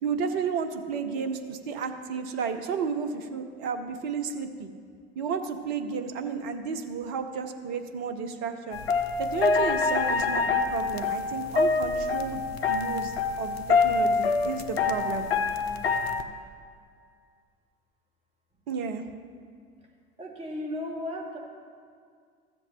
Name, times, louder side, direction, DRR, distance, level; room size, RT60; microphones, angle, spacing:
voice 1, 0.0-4.7 5.2-8.8 9.2-12.4 12.7-15.3 18.7-19.0, right 6 dB, 55° right, 7 dB, 0.9 m, -32 dB
sound 1, 8.7-16.2, left 4 dB, 75° left, 0.6 m, -26 dB
voice 2, 15.5-16.3 20.2-21.4, left 1 dB, 20° right, -2 dB, 2.2 m, -37 dB
14.0 x 8.0 x 3.1 m, 2.1 s
figure-of-eight pair, 65°, 31 cm